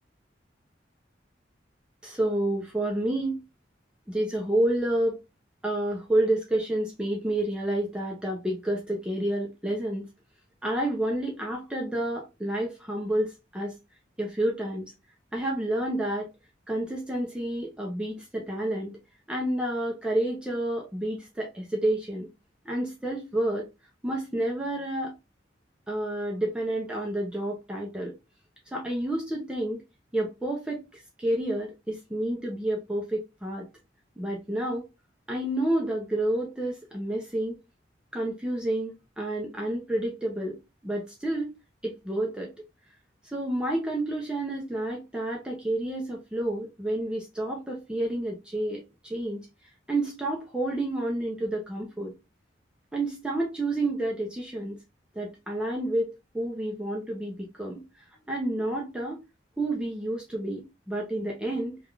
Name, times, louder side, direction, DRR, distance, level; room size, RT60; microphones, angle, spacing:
voice 1, 2.0-3.4 4.1-5.1 5.6-10.0 10.6-13.7 14.2-14.9 15.3-16.3 16.7-18.9 19.3-22.3 22.7-23.7 24.0-25.1 25.9-28.1 28.7-29.8 30.1-33.7 34.2-34.8 35.3-37.6 38.1-40.6 40.8-41.5 41.8-42.5 43.2-49.4 49.9-52.1 52.9-54.8 55.2-57.8 58.3-59.2 59.6-61.8, right 1 dB, 5° right, 0.5 m, -29 dB
3.3 x 2.3 x 2.3 m
head